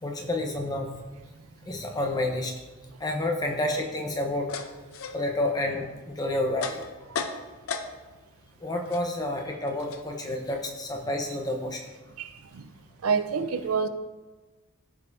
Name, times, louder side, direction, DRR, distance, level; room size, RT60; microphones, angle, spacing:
voice 1, 0.0-0.9 1.7-2.5 3.0-4.5 5.1-6.8 8.6-11.8, left 1 dB, 15° left, 0.9 m, -29 dB
sound 1, 4.0-8.3 8.5-11.4, left 5 dB, 75° left, 0.7 m, -38 dB
voice 2, 12.2-12.7 13.0-13.9, right 5 dB, 80° right, 0.5 m, -28 dB
14.5 x 5.4 x 2.7 m
head